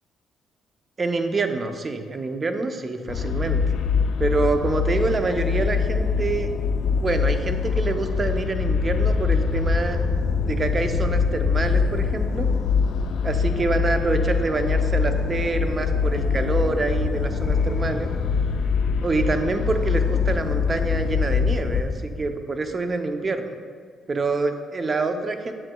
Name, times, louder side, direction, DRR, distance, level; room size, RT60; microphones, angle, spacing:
voice 1, 1.0-3.6 4.2-6.5 7.0-10.0 10.4-12.5 13.2-18.1 19.0-23.5 24.1-25.5, right 3 dB, 35° right, 7 dB, 0.6 m, -26 dB
sound 1, 3.1-21.8, left 5 dB, 80° left, 0.4 m, -24 dB
sound 2, 8.5-22.3, left 3 dB, 30° left, 1.0 m, -34 dB
7.7 x 7.3 x 2.3 m, 2.1 s
cardioid pair, 90°, 0 cm